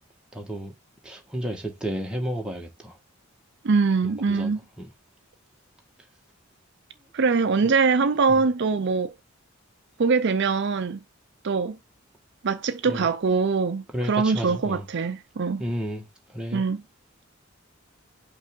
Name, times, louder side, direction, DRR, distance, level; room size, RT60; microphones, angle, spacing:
voice 1, 0.3-0.7 1.0-3.0 4.0-4.5 4.8-4.9 7.6-7.8 8.3-8.5 12.9-13.1 13.9-14.9 15.6-16.6, equal, 5° right, 1.5 m, -32 dB
voice 2, 3.6-4.6 7.1-9.1 10.0-11.0 11.4-11.8 12.4-15.6 16.5-16.8, right 4 dB, 60° right, 0.5 m, -23 dB
5.5 x 3.3 x 5.2 m
head